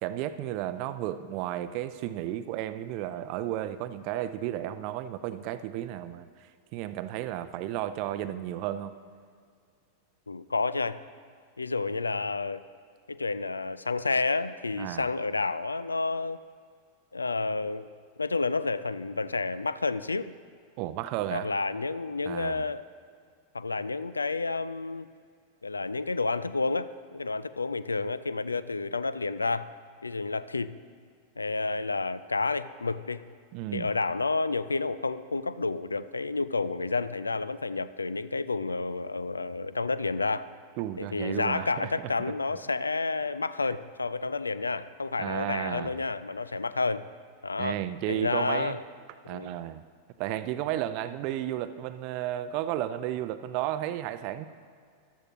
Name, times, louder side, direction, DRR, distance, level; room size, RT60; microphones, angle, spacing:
voice 1, 0.0-6.3 6.7-8.9 14.8-15.1 20.8-21.5 22.3-22.7 33.5-33.9 40.8-41.9 45.2-46.0 47.6-48.8 49.3-49.8 50.2-54.4, right 12 dB, 45° right, 13 dB, 0.5 m, -33 dB
voice 2, 10.3-11.0 11.6-12.6 13.1-16.4 17.1-17.9 18.2-20.3 21.3-22.8 23.5-25.1 25.6-29.7 30.0-30.7 31.4-33.2 33.7-40.5 41.0-47.0 47.4-47.8 48.1-48.8 49.2-49.6, left 3 dB, 80° left, 15 dB, 0.3 m, -30 dB
14.5 x 12.0 x 3.0 m, 2.1 s
figure-of-eight pair, 90°, 0 cm